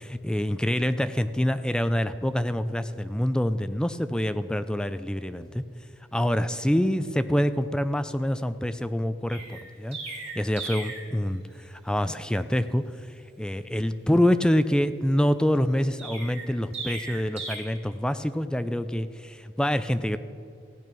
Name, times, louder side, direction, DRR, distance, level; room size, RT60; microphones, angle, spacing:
voice 1, 0.1-5.6 6.1-10.0 10.3-12.8 13.4-20.2, equal, 5° left, 11 dB, 0.4 m, -26 dB
Chirp tweet, 9.3-11.1 16.0-17.6, right 3 dB, 35° right, 2.8 m, -37 dB
15.5 x 8.9 x 6.1 m, 2.5 s
head